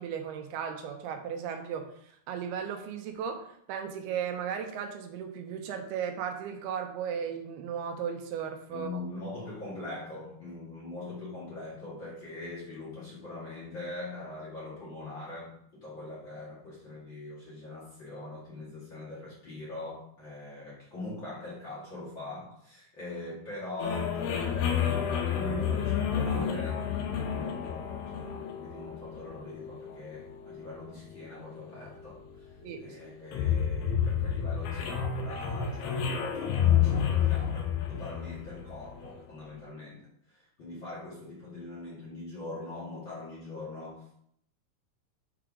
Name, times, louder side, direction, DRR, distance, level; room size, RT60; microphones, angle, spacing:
voice 1, 0.0-1.9 2.3-8.9 32.6-33.0, right 7 dB, 80° right, 5 dB, 2.7 m, -36 dB
voice 2, 8.7-32.5 32.8-44.2, left 2 dB, 35° left, -7 dB, 2.2 m, -42 dB
sound 1, 23.8-39.2, left 8 dB, 80° left, 2.9 m, -30 dB
6.8 x 4.9 x 4.9 m, 0.68 s
omnidirectional pair, 4.6 m